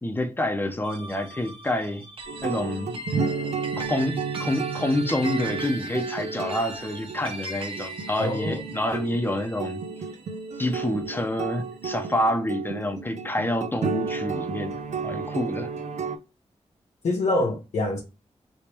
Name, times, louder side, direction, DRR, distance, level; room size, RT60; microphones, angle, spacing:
voice 1, 0.0-2.0 2.4-3.0 3.8-9.8 10.6-14.8 15.0-15.7, left 1 dB, 20° left, 0.7 m, -27 dB
sound 1, 0.8-11.4, right 2 dB, 50° right, 0.9 m, -39 dB
sound 2, 2.3-16.2, right 5 dB, 85° right, 0.5 m, -32 dB
voice 2, 8.2-8.6 17.0-18.0, left 2 dB, 85° left, 0.8 m, -25 dB
3.5 x 3.1 x 2.9 m
wide cardioid pair, 100°, 12 cm